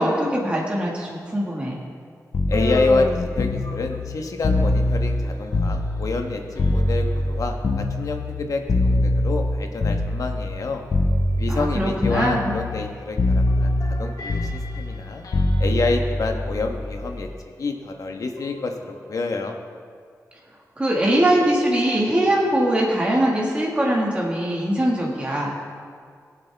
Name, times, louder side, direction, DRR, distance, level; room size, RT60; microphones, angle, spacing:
voice 1, 0.0-1.8 11.5-12.5 20.8-25.6, right 1 dB, 20° right, -3 dB, 1.7 m, -22 dB
sound 1, 2.3-6.3 6.6-10.6 10.9-11.7 12.0-12.9 13.2-17.2 18.4-18.6, left 1 dB, 80° left, 1.4 m, -23 dB
voice 2, 2.5-10.8 11.4-15.2 15.6-17.3 17.6-19.6, left 3 dB, 65° left, 4 dB, 1.2 m, -27 dB
Human voice, 2.5-4.2, left 3 dB, 45° left, 0.5 m, -29 dB
22.0 x 8.0 x 3.4 m, 2.1 s
wide cardioid pair, 165°, 6 cm